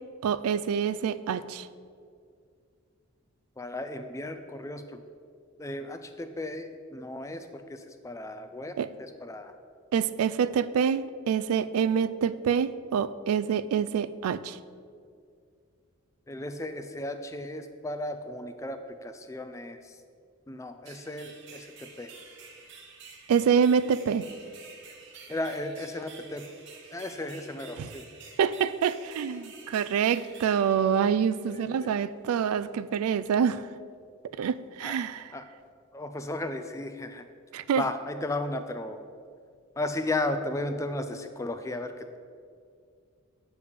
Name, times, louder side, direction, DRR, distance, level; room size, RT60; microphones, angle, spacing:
voice 1, 0.2-1.7 8.8-8.9 9.9-14.6 23.3-24.2 27.8-27.9 28.4-33.7 34.4-35.3 37.5-37.8, right 7 dB, 90° right, 16 dB, 0.3 m, -26 dB
voice 2, 3.6-5.0 5.6-9.5 16.3-20.0 20.5-22.1 25.3-26.4 26.9-28.0 31.5-31.9 34.8-35.0 35.3-35.4 35.9-37.3 37.8-39.0 39.8-42.2, left 2 dB, 15° left, 8 dB, 0.3 m, -35 dB
sound 1, 20.8-31.6, right 5 dB, 55° right, 0.9 m, -50 dB
8.5 x 3.5 x 6.5 m, 2.2 s
head